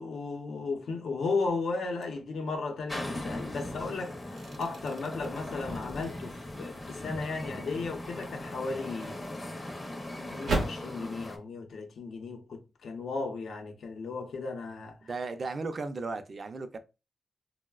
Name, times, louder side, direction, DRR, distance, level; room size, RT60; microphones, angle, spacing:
voice 1, 0.0-9.2 10.1-15.0, left 3 dB, 85° left, 0.6 m, -35 dB
sound 1, 2.0-2.3 2.9-10.9, right 2 dB, 75° right, 0.6 m, -40 dB
sound 2, 2.9-11.4, left 1 dB, 20° left, 0.5 m, -39 dB
voice 2, 15.0-16.8, right 3 dB, 40° right, 0.3 m, -35 dB
3.9 x 2.0 x 2.2 m
wide cardioid pair, 180°, 0 cm